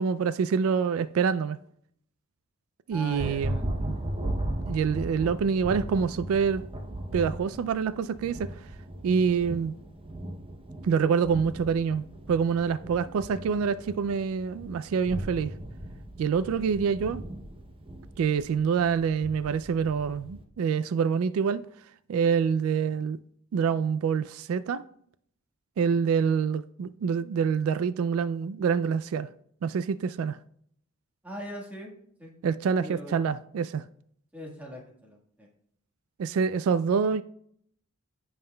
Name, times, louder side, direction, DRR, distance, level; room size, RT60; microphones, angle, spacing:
voice 1, 0.0-1.6 2.9-3.6 4.7-6.6 7.1-8.6 9.0-9.7 10.8-15.5 16.2-17.2 18.2-21.6 22.1-23.2 23.5-24.8 25.8-29.3 29.6-30.4 32.4-33.8 36.2-37.2, right 6 dB, 80° right, 0.3 m, -26 dB
voice 2, 2.9-3.7 31.2-31.9 32.2-32.3 32.8-33.1 34.3-35.5, equal, 5° right, 1.5 m, -41 dB
Thunder, 2.9-20.4, right 1 dB, 25° right, 0.7 m, -37 dB
14.5 x 5.6 x 2.2 m
head